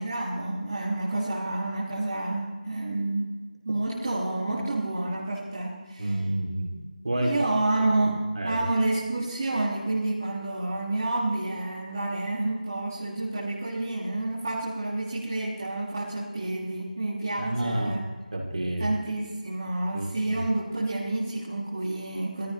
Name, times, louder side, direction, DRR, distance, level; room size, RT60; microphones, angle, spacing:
voice 1, 0.0-3.4 3.6-6.0 7.2-18.0 18.8-22.5, right 2 dB, 20° right, -8 dB, 1.9 m, -29 dB
voice 2, 6.0-7.4 7.8-8.7 17.4-18.0 18.3-18.9 19.9-20.4, right 1 dB, 50° right, 0 dB, 2.6 m, -30 dB
18.0 x 14.0 x 3.1 m, 1.3 s
figure-of-eight pair, 180°, 5 cm